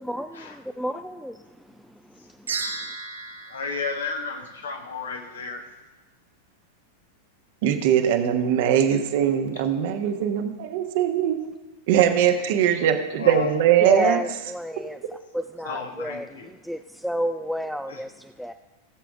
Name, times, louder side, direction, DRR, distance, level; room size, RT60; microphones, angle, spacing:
voice 1, 0.0-1.4 1.9-2.5 13.8-18.5, equal, ahead, 9 dB, 0.3 m, -31 dB
sound 1, 2.5-4.9, right 4 dB, 75° right, 1.4 m, -35 dB
voice 2, 3.5-5.7 13.2-13.5 15.6-16.5 17.9-18.0, left 4 dB, 65° left, 3 dB, 1.7 m, -33 dB
voice 3, 7.6-11.4 11.9-14.2, right 9 dB, 50° right, 6 dB, 1.2 m, -21 dB
17.0 x 7.4 x 3.6 m, 1.1 s
figure-of-eight pair, 90°, 0 cm